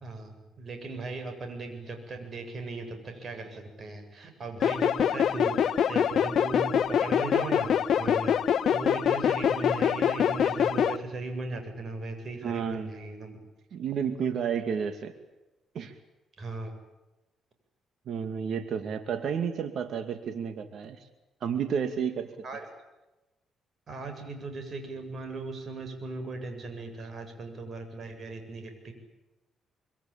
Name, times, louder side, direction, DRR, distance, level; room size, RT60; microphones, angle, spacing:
voice 1, 0.0-13.4 16.4-16.7 22.4-22.7 23.9-28.9, right 3 dB, 45° right, 6 dB, 7.7 m, -38 dB
sound 1, 4.6-11.0, left 8 dB, 65° left, 1.2 m, -25 dB
voice 2, 12.4-12.9 13.7-15.1 15.7-15.9 18.1-21.1 21.4-22.3, right 7 dB, 65° right, 9 dB, 2.4 m, -31 dB
24.5 x 24.5 x 8.9 m, 1.0 s
cardioid pair, 90°, 0 cm